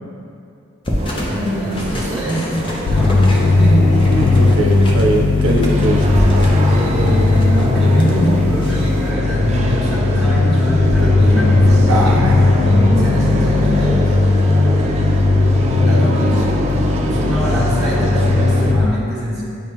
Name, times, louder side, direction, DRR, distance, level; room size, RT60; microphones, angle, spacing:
sound 1, 0.8-9.1, equal, 25° left, 0.6 m, -26 dB
sound 2, 1.0-18.7, right 2 dB, 30° right, 0.4 m, -25 dB
voice 1, 1.2-2.5 2.9-4.0 6.6-12.3 12.6-14.2 15.8-16.5 17.0-19.4, equal, ahead, -11 dB, 1.5 m, -23 dB
sound 3, 2.9-18.9, left 3 dB, 70° left, 0.4 m, -16 dB
voice 2, 4.2-6.2 11.9-12.4 14.6-15.1, right 2 dB, 80° right, 1 dB, 0.6 m, -21 dB
8.9 x 3.6 x 2.9 m, 2.6 s
head